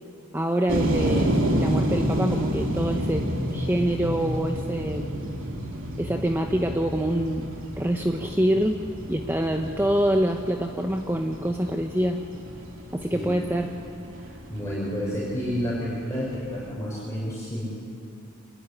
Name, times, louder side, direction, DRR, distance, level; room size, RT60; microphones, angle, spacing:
voice 1, 0.3-5.4 6.0-8.8 9.1-12.2 12.9-13.7, right 1 dB, 10° right, 3 dB, 1.0 m, -26 dB
sound 1, 0.7-16.7, equal, 60° right, 3.5 m, -30 dB
voice 2, 14.5-17.7, equal, 15° left, -7 dB, 5.9 m, -30 dB
26.0 x 20.5 x 10.0 m, 2.6 s
head